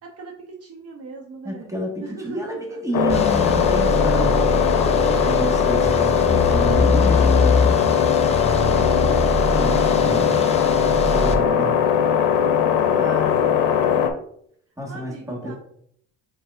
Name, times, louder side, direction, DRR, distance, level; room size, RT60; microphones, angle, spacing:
voice 1, 0.0-1.7 2.0-2.8 3.6-4.6 6.8-7.7 8.6-9.2 12.7-14.1 14.9-15.5, right 3 dB, 55° right, 1 dB, 0.8 m, -38 dB
voice 2, 1.4-4.4 5.0-7.8 9.0-10.3 11.0-11.8 12.9-13.5 14.8-15.5, right 1 dB, 10° right, -1 dB, 1.5 m, -30 dB
sound 1, 2.9-14.1, left 8 dB, 85° left, 0.6 m, -19 dB
sound 2, 3.1-11.3, left 2 dB, 20° left, 0.6 m, -23 dB
5.5 x 3.8 x 2.4 m, 0.68 s
cardioid pair, 100°, 30 cm